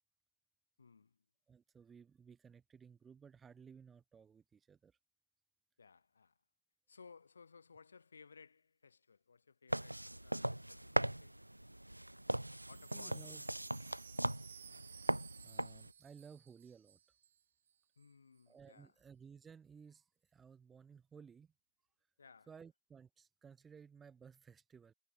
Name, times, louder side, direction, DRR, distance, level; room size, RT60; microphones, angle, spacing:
voice 1, 0.8-1.3 5.8-6.4 6.9-11.4 12.7-13.6 18.0-19.0 22.2-22.5, left 5 dB, 75° left, 6.0 m, -61 dB
voice 2, 1.5-4.9 12.9-13.4 15.4-17.0 18.5-20.0 20.3-21.5 22.5-24.9, right 6 dB, 20° right, 1.2 m, -58 dB
sound 1, 9.7-15.9, right 1 dB, 85° right, 0.4 m, -39 dB
Wind chime, 12.2-17.4 17.7-17.8 18.0-18.4, right 9 dB, 65° right, 1.5 m, -58 dB
figure-of-eight pair, 90°, 0 cm